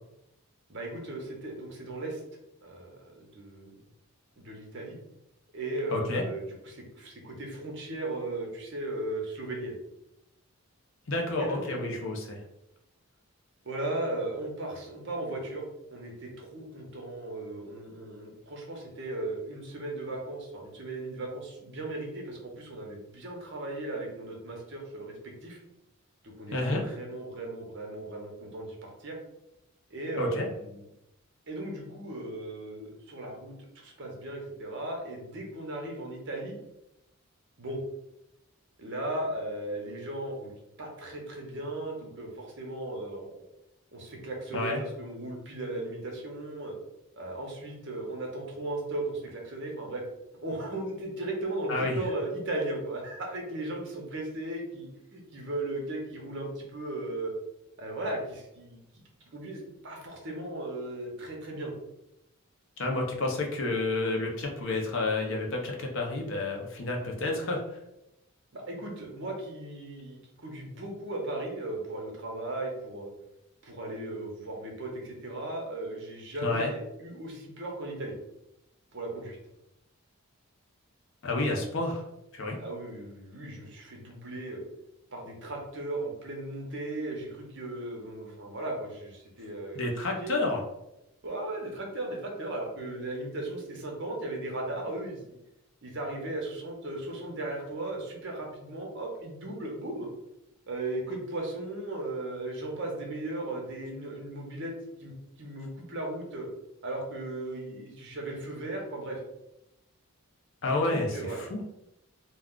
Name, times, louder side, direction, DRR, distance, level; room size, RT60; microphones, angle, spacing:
voice 1, 0.7-2.2 2.6-3.8 4.4-5.0 5.5-9.8 11.4-11.9 13.6-15.6 15.9-25.6 26.2-29.2 29.9-30.8 31.5-36.6 37.6-37.8 38.8-40.5 40.8-43.4 43.9-46.7 47.1-50.0 50.4-57.3 57.8-58.8 59.3-61.7 68.5-73.1 73.6-78.1 78.9-79.4 82.6-84.6 85.1-89.8 90.2-90.3 91.2-95.4 95.8-100.1 100.7-104.7 105.0-105.1 105.4-106.5 106.8-109.2 110.6-111.4, right 2 dB, 55° right, 0 dB, 0.7 m, -36 dB
voice 2, 5.9-6.2 11.1-12.4 26.5-26.8 30.2-30.4 44.5-44.8 51.7-52.0 62.8-67.6 76.4-76.7 81.2-82.0 82.3-82.6 89.7-90.6 110.6-111.1 111.4-111.6, left 2 dB, 60° left, 1 dB, 0.6 m, -30 dB
2.3 x 2.3 x 3.6 m, 0.86 s
head